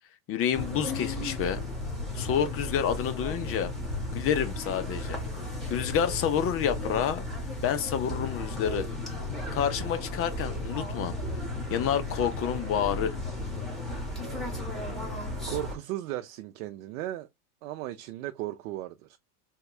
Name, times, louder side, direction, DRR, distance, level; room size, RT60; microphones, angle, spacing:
voice 1, 0.3-1.6 2.1-3.7 4.1-5.2 5.7-7.2 7.6-8.9 9.5-11.2 11.7-13.2, left 8 dB, 30° left, 0.6 m, -28 dB
sound 1, 0.5-15.8, left 2 dB, ahead, 1.4 m, -34 dB
voice 2, 15.5-17.3 17.6-19.2, right 14 dB, 65° right, 0.5 m, -36 dB
3.5 x 2.3 x 3.1 m
hypercardioid pair, 100°, 46 cm